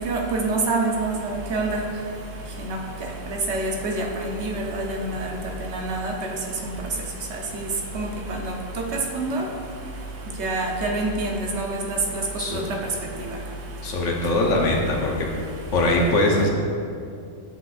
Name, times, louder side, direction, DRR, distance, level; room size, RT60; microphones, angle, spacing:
voice 1, 0.1-1.8 3.5-5.3 5.7-6.1 7.5-7.7 7.9-8.1 9.1-9.4 10.4-12.0 12.5-12.6, right 2 dB, 65° right, 1 dB, 1.0 m, -26 dB
voice 2, 13.8-15.3 15.7-16.5, left 2 dB, 75° left, 0 dB, 1.2 m, -21 dB
7.3 x 6.0 x 2.4 m, 2.3 s
omnidirectional pair, 1.3 m